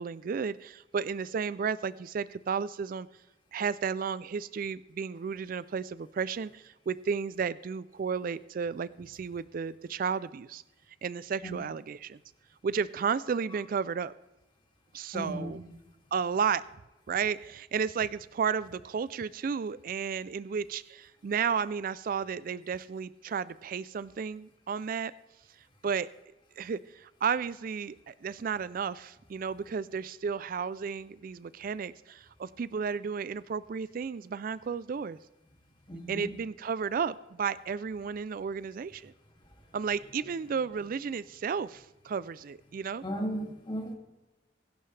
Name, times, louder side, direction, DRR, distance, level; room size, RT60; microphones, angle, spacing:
voice 1, 0.0-3.1 3.5-10.6 11.0-12.2 12.6-14.1 14.9-15.6 16.1-16.6 17.1-25.1 25.8-26.1 26.6-35.2 36.1-39.1 39.7-43.0, right 6 dB, 50° right, 17 dB, 0.3 m, -33 dB
voice 2, 15.1-15.6 35.9-36.3 43.0-43.9, equal, 25° left, 1 dB, 2.4 m, -35 dB
22.5 x 11.5 x 3.3 m, 1.0 s
head